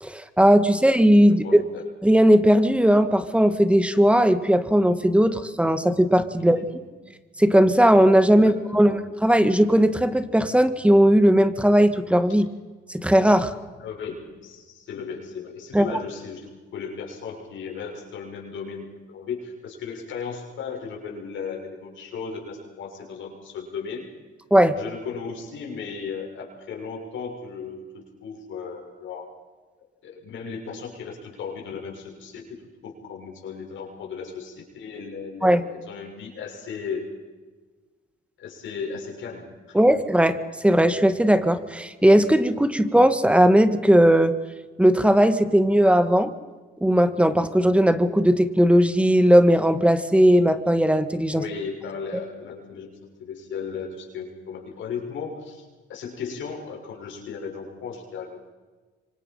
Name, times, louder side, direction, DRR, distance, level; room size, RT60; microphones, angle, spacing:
voice 1, 0.0-1.6 2.0-6.6 7.4-12.5 12.9-13.5 15.7-15.9 24.5-24.8 35.4-35.6 39.7-40.4 40.6-44.3 44.8-46.3 46.8-51.4, equal, 5° right, 11 dB, 1.9 m, -18 dB
voice 2, 1.3-1.8 6.4-6.8 8.4-9.0 13.8-24.1 24.8-29.3 30.0-32.4 32.8-37.1 38.4-40.0 51.3-52.9 53.2-58.5, left 5 dB, 75° left, 0 dB, 7.1 m, -36 dB
27.0 x 25.0 x 5.7 m, 1.3 s
cardioid pair, 90°, 20 cm